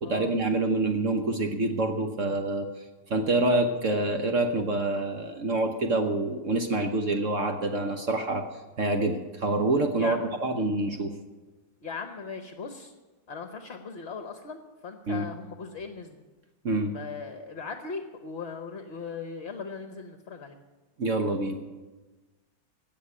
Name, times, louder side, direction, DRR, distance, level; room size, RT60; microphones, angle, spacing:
voice 1, 0.0-2.8 3.1-8.4 8.8-11.1 15.1-15.3 16.6-16.9 21.0-21.6, right 2 dB, 50° right, 4 dB, 1.2 m, -26 dB
voice 2, 11.8-12.9 13.3-16.2 16.9-20.6, left 5 dB, 45° left, 6 dB, 1.1 m, -38 dB
16.5 x 6.8 x 9.7 m, 1.2 s
omnidirectional pair, 1.9 m